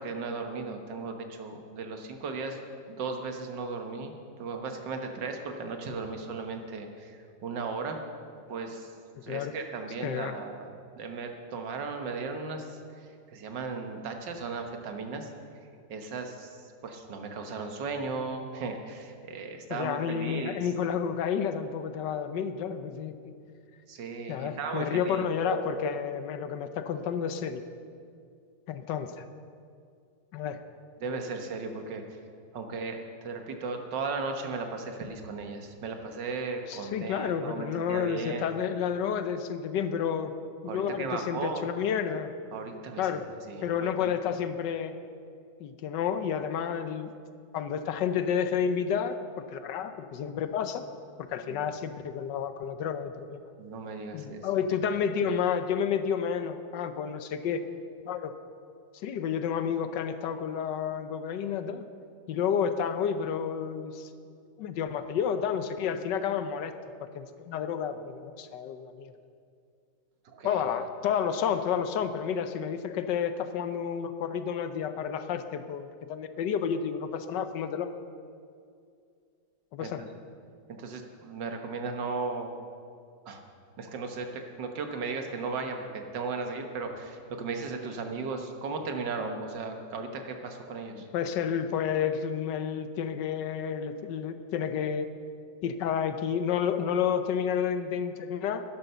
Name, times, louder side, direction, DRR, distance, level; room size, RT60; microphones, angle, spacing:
voice 1, 0.0-2.6 2.9-8.0 8.5-8.9 9.2-15.3 15.9-21.3 23.9-26.0 31.0-32.2 32.5-38.4 40.7-41.7 42.5-43.1 43.5-43.9 51.5-51.6 53.6-54.5 70.3-70.6 79.8-80.1 80.7-82.5 83.3-83.4 83.8-91.1, right 4 dB, 75° right, 5 dB, 1.9 m, -36 dB
voice 2, 10.0-10.3 19.7-23.3 24.3-27.6 28.7-29.2 30.3-30.6 36.7-40.3 40.6-42.3 43.0-43.2 43.6-44.9 45.6-47.1 47.5-50.8 51.2-53.4 54.1-57.6 58.0-58.3 58.9-61.9 62.3-64.1 64.6-66.7 67.0-69.1 70.4-77.9 79.7-80.1 90.9-95.1 95.6-98.6, left 7 dB, 75° left, 10 dB, 1.3 m, -30 dB
12.0 x 11.0 x 6.8 m, 2.3 s
omnidirectional pair, 1.9 m